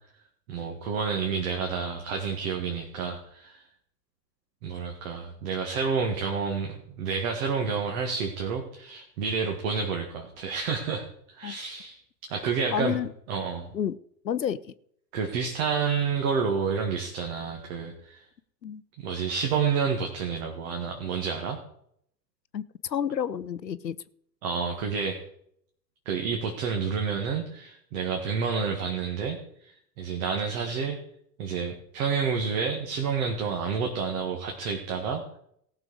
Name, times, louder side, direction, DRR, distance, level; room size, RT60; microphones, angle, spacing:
voice 1, 0.5-3.6 4.6-11.1 11.3-12.0 12.3-13.0 13.3-13.7 15.1-18.3 19.0-21.6 24.4-25.2 26.1-31.0 31.4-35.2, right 5 dB, 55° right, 2 dB, 1.9 m, -29 dB
voice 2, 12.7-13.1 13.7-14.0 14.2-14.6 18.6-18.8 22.5-24.0, left 9 dB, 90° left, 17 dB, 0.6 m, -30 dB
18.0 x 6.8 x 4.8 m, 0.69 s
figure-of-eight pair, 85°, 49 cm